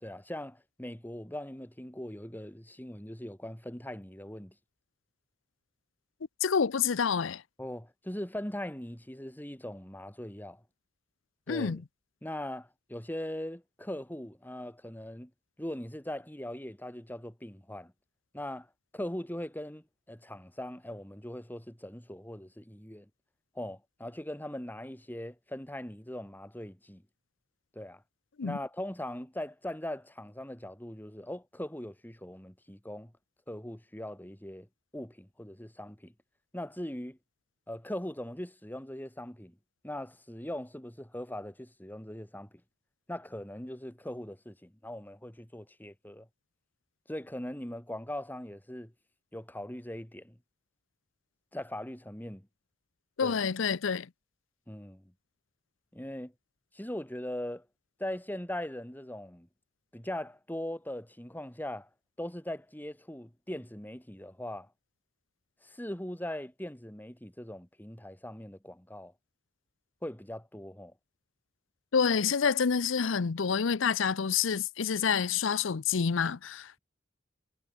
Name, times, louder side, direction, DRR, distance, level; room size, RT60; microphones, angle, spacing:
voice 1, 0.0-4.5 7.6-10.6 11.5-11.8 12.2-15.3 15.6-17.9 18.3-18.7 18.9-23.1 23.5-27.0 27.7-28.0 28.4-33.1 33.5-34.7 34.9-36.1 36.5-37.2 37.7-39.6 39.8-42.6 43.1-46.3 47.1-48.9 49.3-50.4 51.5-52.5 53.2-53.4 54.7-55.1 55.9-56.3 56.7-57.7 58.0-59.5 59.9-61.9 62.2-64.7 65.6-69.1 70.0-70.9, left 1 dB, 10° left, 2.7 m, -40 dB
voice 2, 6.4-7.4 11.5-11.8 28.4-28.6 53.2-54.1 71.9-76.8, left 6 dB, 70° left, 0.6 m, -28 dB
head